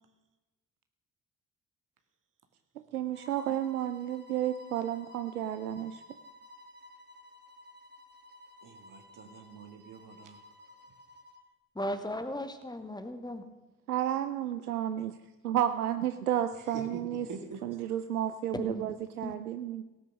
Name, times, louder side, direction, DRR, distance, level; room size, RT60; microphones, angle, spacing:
voice 1, 2.8-6.0 13.9-15.1 15.4-17.3 17.6-19.8, right 11 dB, 85° right, 10 dB, 0.6 m, -32 dB
sound 1, 3.1-11.5, left 2 dB, 25° right, 2.6 m, -54 dB
voice 2, 8.6-10.4 16.7-17.0 17.3-17.6, right 5 dB, 45° right, 5 dB, 2.4 m, -45 dB
voice 3, 11.8-13.4 18.5-18.8 19.2-19.3, left 1 dB, 10° left, 8 dB, 2.1 m, -36 dB
17.5 x 9.4 x 6.3 m, 1.1 s
figure-of-eight pair, 45°, 44 cm